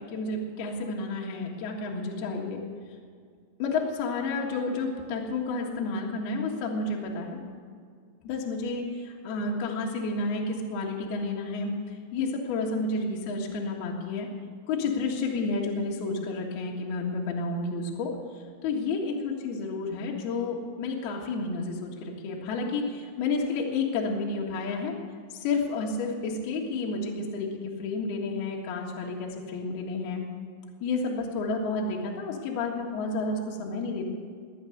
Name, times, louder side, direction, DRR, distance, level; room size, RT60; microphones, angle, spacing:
voice 1, 0.0-2.6 3.6-7.4 8.2-14.3 14.7-18.1 18.6-24.9 25.3-27.5 27.8-30.2 30.8-34.1, left 3 dB, 60° left, -1 dB, 3.3 m, -30 dB
22.5 x 9.0 x 6.6 m, 2.1 s
omnidirectional pair, 5.4 m